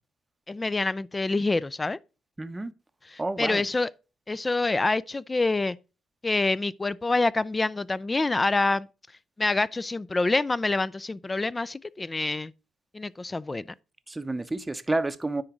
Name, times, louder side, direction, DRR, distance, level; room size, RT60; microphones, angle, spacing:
voice 1, 0.5-2.0 3.1-3.9 4.3-5.8 6.2-8.9 9.4-12.5 12.9-13.6, left 3 dB, 20° left, 0.4 m, -26 dB
voice 2, 2.4-2.7 3.2-3.6 14.1-15.4, right 2 dB, 15° right, 0.7 m, -29 dB
9.5 x 3.9 x 6.1 m
cardioid pair, 90°, 0 cm